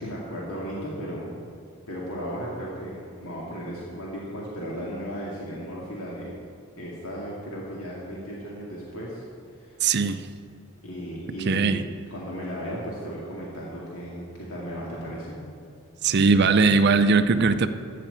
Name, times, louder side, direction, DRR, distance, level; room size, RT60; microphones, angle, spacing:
voice 1, 0.0-1.5 1.9-6.3 6.8-9.2 9.5-9.8 10.8-15.4, equal, 85° left, -5 dB, 2.2 m, -35 dB
voice 2, 9.8-10.3 11.5-11.8 16.0-17.7, right 4 dB, 50° right, 10 dB, 0.5 m, -20 dB
15.0 x 6.0 x 8.6 m, 2.4 s
head